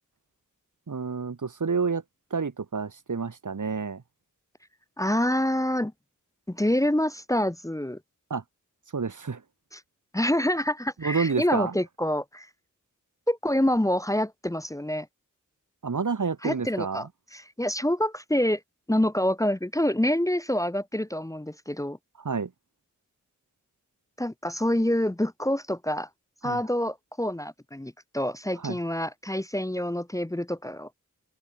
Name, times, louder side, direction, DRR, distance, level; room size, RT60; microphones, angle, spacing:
voice 1, 0.9-2.0 2.3-4.0 8.3-8.4 8.9-9.4 11.0-11.7 15.8-17.1 22.2-22.5 26.4-26.6 28.6-28.8, right 5 dB, 75° right, 3.1 m, -29 dB
voice 2, 5.0-5.9 6.5-8.0 9.7-9.8 10.1-12.5 13.3-15.1 16.4-18.6 18.9-22.0 24.2-26.1 26.4-30.9, left 1 dB, 10° left, 0.8 m, -27 dB
wide cardioid pair, 85°, 31 cm